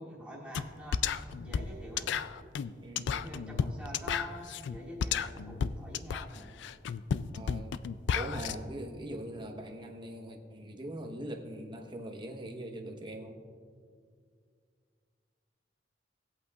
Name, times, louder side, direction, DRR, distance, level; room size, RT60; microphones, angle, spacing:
voice 1, 0.0-2.3 3.1-6.5, equal, 5° right, -7 dB, 2.6 m, -46 dB
sound 1, 0.5-0.7 0.9-8.5, left 7 dB, 65° left, 0.3 m, -33 dB
voice 2, 2.8-3.3 7.3-7.8 8.1-13.4, right 1 dB, 25° right, 2 dB, 1.0 m, -42 dB
18.5 x 8.4 x 2.3 m, 2.1 s
head